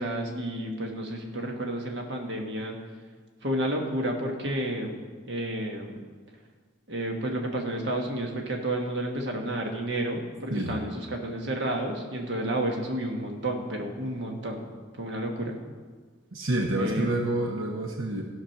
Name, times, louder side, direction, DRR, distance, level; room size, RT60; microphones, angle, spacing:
voice 1, 0.0-2.8 3.4-5.0 5.3-5.9 6.9-14.7 14.9-15.6 16.8-17.2, right 1 dB, 55° right, 2 dB, 1.4 m, -31 dB
voice 2, 16.3-18.2, right 1 dB, 80° right, 2 dB, 1.0 m, -28 dB
14.0 x 6.0 x 5.8 m, 1.5 s
head